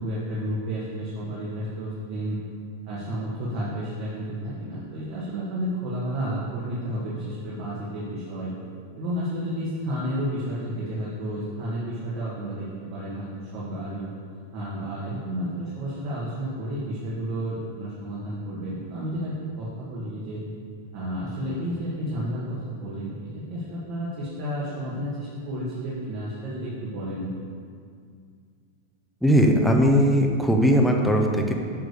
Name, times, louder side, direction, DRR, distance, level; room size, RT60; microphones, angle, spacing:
voice 1, 0.0-2.4 2.8-8.5 9.0-14.1 14.5-20.4 20.9-27.3, equal, 45° right, -7 dB, 1.6 m, -31 dB
voice 2, 29.2-31.5, equal, ahead, 1 dB, 0.7 m, -19 dB
8.9 x 3.4 x 6.7 m, 2.2 s
supercardioid pair, 150°, 0 cm